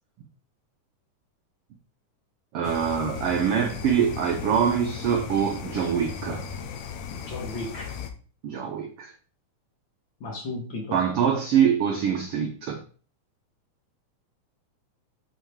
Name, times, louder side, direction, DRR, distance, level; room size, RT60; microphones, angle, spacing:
voice 1, 2.5-6.5 8.4-9.1 10.9-12.8, right 8 dB, 75° right, 1.4 m, -24 dB
sound 1, 2.6-8.1, left 7 dB, 75° left, 2.1 m, -36 dB
voice 2, 7.1-7.9 10.2-10.9, left 2 dB, 45° left, 2.0 m, -34 dB
6.9 x 4.5 x 4.7 m
omnidirectional pair, 3.6 m